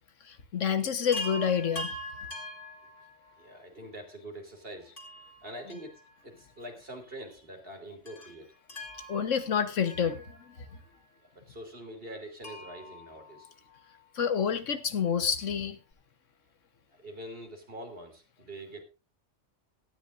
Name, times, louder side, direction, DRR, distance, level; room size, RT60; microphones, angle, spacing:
voice 1, 0.3-1.9 9.1-10.4 14.1-15.8, left 7 dB, 90° left, 1.5 m, -28 dB
Chime, 1.1-3.5 5.0-6.5 6.8-6.9 8.1-10.8 12.4-14.0 15.6-15.7 15.9-16.0, left 1 dB, 45° left, 2.6 m, -43 dB
voice 2, 3.2-4.9 5.4-9.2 10.7-10.9 11.2-13.5 16.9-18.8, right 1 dB, 50° right, 3.3 m, -45 dB
17.5 x 13.5 x 2.6 m
omnidirectional pair, 1.2 m